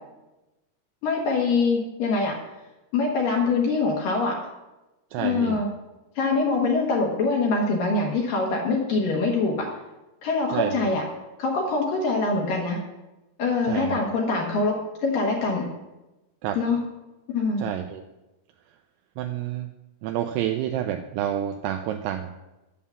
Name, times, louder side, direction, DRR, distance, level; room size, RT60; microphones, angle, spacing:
voice 1, 1.0-2.3 2.9-4.4 5.2-5.7 6.2-9.7 10.2-11.0 11.4-12.8 13.4-14.8 15.0-15.7 16.5-16.8 17.3-17.7, left 3 dB, 65° left, -1 dB, 2.5 m, -24 dB
voice 2, 5.1-5.6 10.5-10.9 13.7-14.0 16.4-16.6 17.6-18.0 19.2-19.7 20.0-22.3, right 11 dB, 85° right, 5 dB, 2.3 m, -28 dB
8.4 x 7.3 x 7.0 m, 1.0 s
omnidirectional pair, 5.3 m